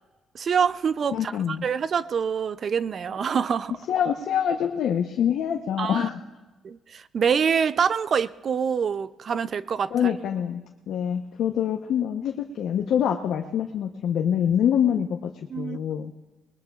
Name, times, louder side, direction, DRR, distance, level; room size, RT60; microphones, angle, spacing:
voice 1, 0.3-3.7 5.8-6.1 6.6-10.1 15.5-15.9, right 7 dB, 50° right, 16 dB, 0.4 m, -26 dB
voice 2, 1.1-1.6 3.9-6.2 9.9-10.6 10.9-15.2 15.6-16.1, left 9 dB, 75° left, 3 dB, 0.8 m, -25 dB
21.0 x 20.0 x 2.4 m, 1.2 s
cardioid pair, 90°, 0 cm